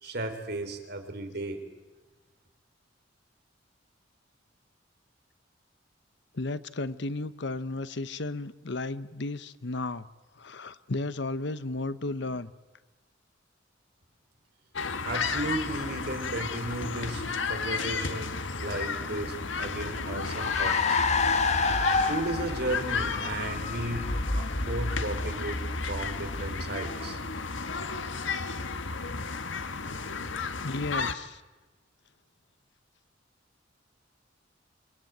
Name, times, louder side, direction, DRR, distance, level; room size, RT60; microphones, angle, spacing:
voice 1, 0.0-1.6 15.0-21.0 22.1-27.2, right 1 dB, 60° right, 6 dB, 3.9 m, -35 dB
voice 2, 6.3-10.1 10.4-12.5 30.6-31.4, left 2 dB, 65° left, 15 dB, 1.0 m, -34 dB
sound 1, 14.7-31.1, left 4 dB, 85° left, 1.6 m, -33 dB
Car, 19.2-27.0, left 3 dB, 35° left, 1.4 m, -30 dB
26.5 x 23.5 x 9.3 m, 1.2 s
head